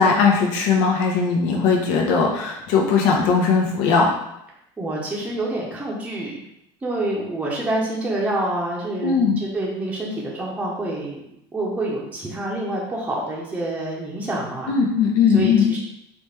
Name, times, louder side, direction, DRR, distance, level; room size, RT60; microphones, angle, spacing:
voice 1, 0.0-4.1 9.0-9.4 14.7-15.7, left 5 dB, 75° left, 0 dB, 1.0 m, -19 dB
voice 2, 4.8-6.3 6.8-11.2 11.5-14.7 15.3-15.8, right 1 dB, 10° right, -4 dB, 0.8 m, -27 dB
4.1 x 3.3 x 3.4 m, 0.80 s
cardioid pair, 155°, 11 cm